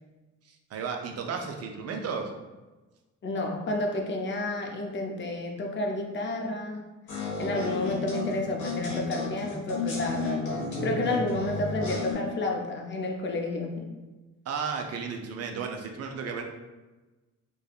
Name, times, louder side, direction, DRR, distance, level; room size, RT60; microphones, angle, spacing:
voice 1, 0.5-2.3 14.5-16.4, right 5 dB, 55° right, 3 dB, 0.5 m, -34 dB
voice 2, 3.2-6.9 7.4-13.9, left 2 dB, 40° left, 1 dB, 0.5 m, -30 dB
sound 1, 7.1-12.1, left 3 dB, 85° left, 1.2 m, -32 dB
3.3 x 2.2 x 2.3 m, 1.2 s
cardioid pair, 90°, 30 cm